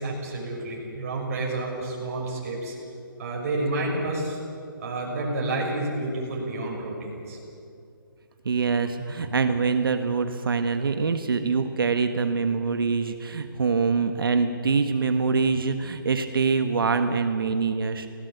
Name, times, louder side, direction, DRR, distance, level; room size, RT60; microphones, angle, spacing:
voice 1, 0.0-2.7 3.2-4.4 4.8-7.4, right 2 dB, 40° right, -1 dB, 6.4 m, -29 dB
voice 2, 8.4-18.1, right 5 dB, 75° right, 7 dB, 1.4 m, -24 dB
22.5 x 18.0 x 8.2 m, 2.6 s
hypercardioid pair, 160°, 12 cm